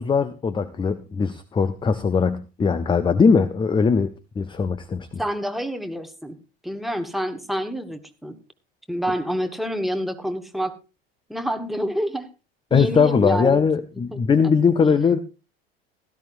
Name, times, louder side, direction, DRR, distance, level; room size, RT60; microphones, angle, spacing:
voice 1, 0.0-4.1 4.4-5.1 12.7-15.2, left 5 dB, 15° left, 14 dB, 0.6 m, -20 dB
voice 2, 5.2-6.4 6.6-8.4 8.9-10.7 11.3-12.3 12.7-13.6 14.1-14.2 14.8-14.9, equal, ahead, 6 dB, 1.3 m, -27 dB
16.5 x 13.0 x 2.6 m, 0.30 s
figure-of-eight pair, 75°, 31 cm